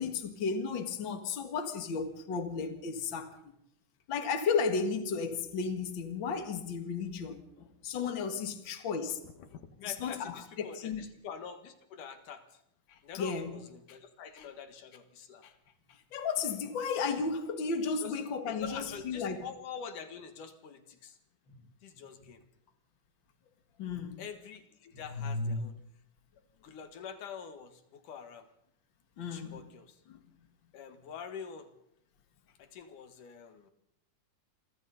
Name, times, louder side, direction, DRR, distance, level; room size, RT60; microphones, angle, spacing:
voice 1, 0.0-3.4 4.1-9.2 9.9-11.1 13.1-13.5 15.4-15.5 16.1-19.4 23.8-24.2 25.1-25.6 29.2-29.6 30.1-30.2, left 5 dB, 40° left, 2.3 m, -34 dB
voice 2, 9.2-12.6 13.0-15.4 18.0-18.1 18.5-21.2 21.8-22.4 24.2-25.8 26.6-28.5 29.2-30.0 30.7-31.7 32.6-33.7, left 7 dB, 85° left, 3.2 m, -46 dB
28.0 x 24.0 x 4.2 m
omnidirectional pair, 3.6 m